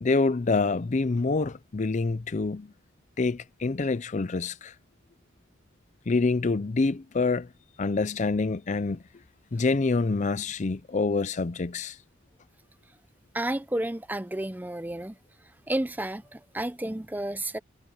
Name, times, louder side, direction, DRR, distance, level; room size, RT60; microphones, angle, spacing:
voice 1, 0.0-2.7 3.2-4.7 6.1-7.5 7.8-9.0 9.5-12.0, left 3 dB, 35° left, 0.5 m, -26 dB
voice 2, 13.3-15.2 15.7-17.6, right 1 dB, 10° right, 0.6 m, -31 dB
head